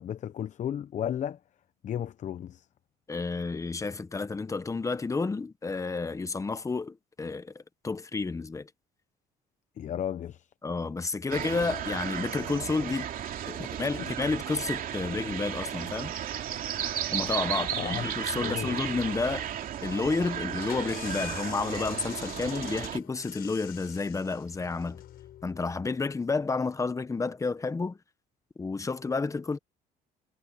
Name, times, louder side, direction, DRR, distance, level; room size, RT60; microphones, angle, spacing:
voice 1, 0.0-1.4 1.8-2.7 9.8-10.5 14.0-14.1 17.8-18.1 18.4-18.8, left 9 dB, 45° left, 0.7 m, -34 dB
voice 2, 3.1-8.7 10.6-13.1 13.5-16.1 17.1-19.5 19.8-25.0 25.4-28.0 28.6-29.6, left 4 dB, 20° left, 1.1 m, -31 dB
sound 1, 11.3-23.0, right 10 dB, 55° right, 2.7 m, -34 dB
sound 2, 20.5-26.0, left 12 dB, 65° left, 5.4 m, -44 dB
cardioid pair, 110°, 17 cm